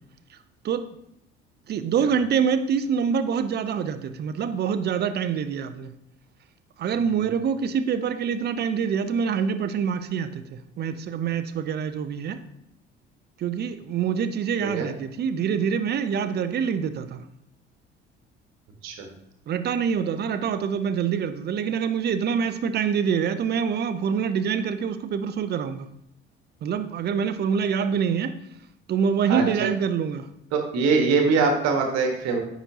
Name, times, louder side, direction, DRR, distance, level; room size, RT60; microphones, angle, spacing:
voice 1, 1.7-5.9 6.8-12.4 13.4-17.2 19.5-25.9 26.6-28.3 28.9-30.2, right 7 dB, 30° right, 11 dB, 0.5 m, -25 dB
voice 2, 30.5-32.4, right 4 dB, 55° right, 4 dB, 1.3 m, -22 dB
9.7 x 4.0 x 2.7 m, 0.78 s
figure-of-eight pair, 55°, 32 cm